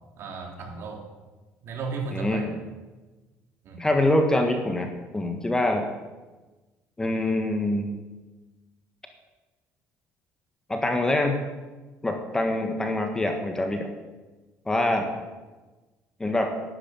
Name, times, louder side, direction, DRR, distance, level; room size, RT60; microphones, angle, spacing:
voice 1, 0.2-1.0 1.6-2.5 3.6-3.8 14.8-15.1, right 4 dB, 55° right, 1 dB, 3.5 m, -35 dB
voice 2, 2.1-2.5 3.8-5.9 7.0-8.0 10.7-11.4 12.0-13.9 14.6-15.1 16.2-16.5, left 1 dB, 10° left, 4 dB, 1.6 m, -25 dB
12.0 x 9.8 x 8.8 m, 1.2 s
cardioid pair, 130°, 5 cm